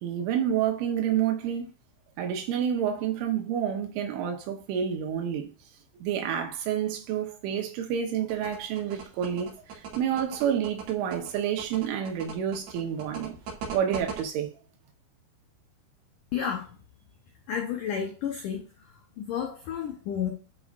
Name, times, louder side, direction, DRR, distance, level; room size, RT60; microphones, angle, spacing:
voice 1, 0.0-1.7 2.2-5.5 6.0-13.4 13.7-14.5, right 9 dB, 80° right, 3.8 m, -29 dB
sound 1, 8.3-14.2, right 6 dB, 60° right, 4.3 m, -39 dB
voice 2, 16.3-16.7 17.5-18.6 19.2-20.3, left 8 dB, 80° left, 1.9 m, -31 dB
11.5 x 5.4 x 2.6 m
omnidirectional pair, 5.6 m